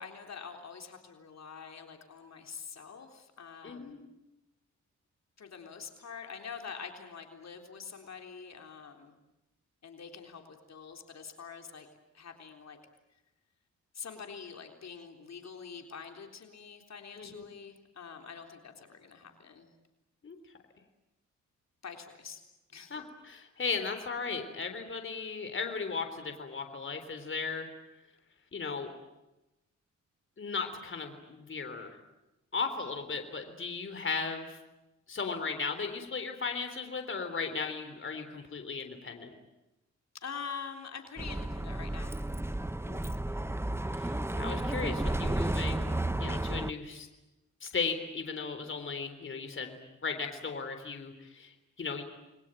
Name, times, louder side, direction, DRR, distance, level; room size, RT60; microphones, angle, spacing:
voice 1, 0.0-4.0 5.4-9.1 9.8-11.9 12.1-12.8 13.9-19.7 21.8-22.4 22.7-23.0 40.2-42.2, left 6 dB, 60° left, 4 dB, 3.7 m, -45 dB
voice 2, 3.6-4.1 17.2-17.5 20.2-20.4 22.9-27.7 28.5-28.9 30.4-31.9 32.5-34.6 35.1-39.3 42.9-43.0 43.9-47.1 47.6-49.8 50.0-52.0, left 5 dB, 40° left, 7 dB, 3.7 m, -36 dB
Bus, 41.2-46.7, right 1 dB, 10° right, 1.0 m, -32 dB
29.5 x 22.0 x 9.1 m, 0.96 s
cardioid pair, 100°, 29 cm